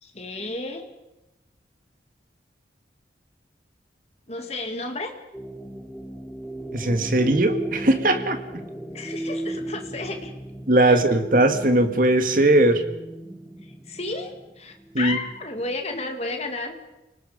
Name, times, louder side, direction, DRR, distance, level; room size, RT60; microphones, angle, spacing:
voice 1, 0.0-0.9 4.3-5.1 8.9-10.3 10.8-11.0 13.6-16.7, left 2 dB, 35° left, 4 dB, 2.5 m, -32 dB
sound 1, 5.3-15.8, right 1 dB, 5° left, 3.0 m, -36 dB
voice 2, 6.7-8.4 10.7-12.8 14.9-15.2, right 1 dB, 50° right, 7 dB, 2.0 m, -19 dB
29.0 x 19.0 x 5.2 m, 0.97 s
head